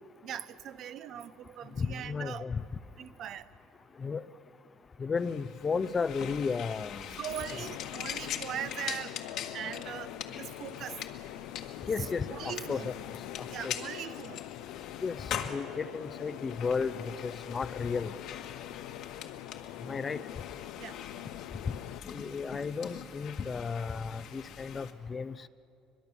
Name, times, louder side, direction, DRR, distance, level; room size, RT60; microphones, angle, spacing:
voice 1, 0.2-2.5 3.0-3.5 7.2-9.2 9.5-11.0 12.3-12.9 13.5-14.4 20.8-21.0, right 10 dB, 55° right, 0.8 m, -40 dB
voice 2, 1.7-2.6 4.0-4.3 5.0-7.2 7.5-7.6 11.9-12.9 13.4-13.7 15.0-18.1 19.8-20.2 22.0-25.5, left 5 dB, 25° left, 0.6 m, -34 dB
sound 1, 5.2-24.9, left 9 dB, 65° left, 1.7 m, -43 dB
sound 2, 7.3-22.0, left 13 dB, 80° left, 0.7 m, -44 dB
23.0 x 22.5 x 7.0 m
cardioid pair, 110°, 0 cm